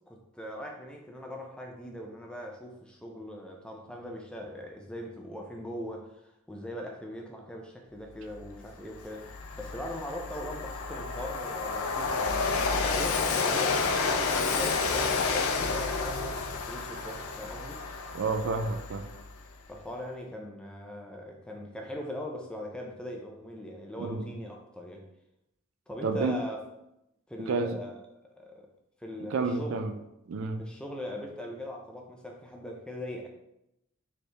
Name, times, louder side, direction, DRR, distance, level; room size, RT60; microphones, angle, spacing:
voice 1, 0.1-17.8 19.7-25.0 25.9-26.6 27.3-27.9 28.2-28.7 29.0-29.8 30.6-33.3, left 1 dB, 5° left, 1 dB, 0.4 m, -40 dB
Train, 8.5-8.6 9.0-19.4, left 4 dB, 70° left, 0.5 m, -30 dB
voice 2, 18.1-19.0 24.0-24.2 26.0-26.4 27.4-27.8 29.3-29.9 30.3-30.6, right 4 dB, 60° right, 7 dB, 0.4 m, -30 dB
4.4 x 3.1 x 3.3 m, 0.86 s
head